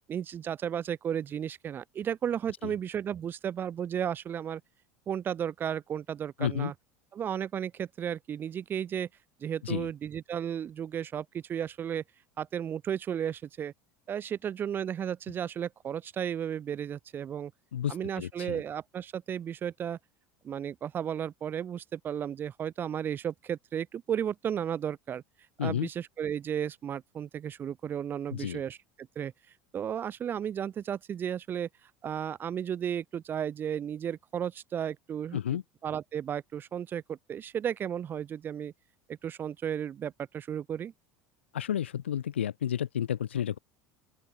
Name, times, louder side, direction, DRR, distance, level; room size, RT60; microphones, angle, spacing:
voice 1, 0.1-4.6 5.1-6.7 7.1-9.1 9.4-12.0 12.4-13.7 14.1-17.5 17.9-20.0 20.4-25.2 25.6-28.8 29.2-29.3 29.7-35.4 35.8-38.7 39.1-40.9, right 9 dB, 35° right, 0.5 m, -34 dB
voice 2, 6.4-6.7 9.6-9.9 17.7-18.6 25.6-25.9 28.3-28.6 35.3-35.6 41.5-43.6, left 10 dB, 85° left, 0.3 m, -31 dB
open air
hypercardioid pair, 75°, 6 cm